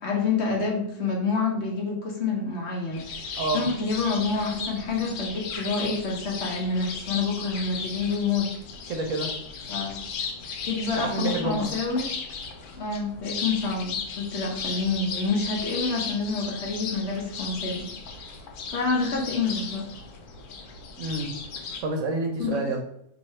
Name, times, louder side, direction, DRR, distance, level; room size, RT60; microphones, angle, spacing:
voice 1, 0.0-8.5 9.7-10.0 10.6-12.1 12.8-17.8 18.7-19.8 22.4-22.6, left 4 dB, 55° left, -2 dB, 1.0 m, -28 dB
sound 1, 2.9-21.8, left 5 dB, 85° left, 1.2 m, -36 dB
voice 2, 8.9-9.3 10.9-11.6 21.0-21.3 21.8-22.8, right 3 dB, 65° right, 3 dB, 0.9 m, -28 dB
3.0 x 2.7 x 4.2 m, 0.76 s
omnidirectional pair, 1.6 m